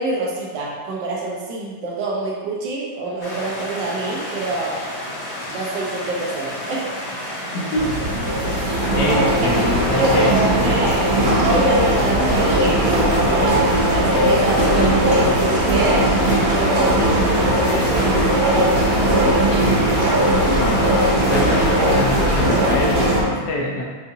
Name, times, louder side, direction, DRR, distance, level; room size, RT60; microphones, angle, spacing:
voice 1, 0.0-4.8 5.5-6.9 9.1-16.1 16.5-19.8, right 2 dB, 85° right, -4 dB, 1.5 m, -26 dB
sound 1, 3.2-22.7, left 1 dB, 55° left, 1.4 m, -31 dB
voice 2, 7.5-8.4 9.0-10.9 20.4-23.8, left 1 dB, 85° left, -1 dB, 1.4 m, -26 dB
sound 2, 7.7-23.2, right 1 dB, 45° right, 1.0 m, -18 dB
6.8 x 2.6 x 2.7 m, 1.4 s
omnidirectional pair, 1.9 m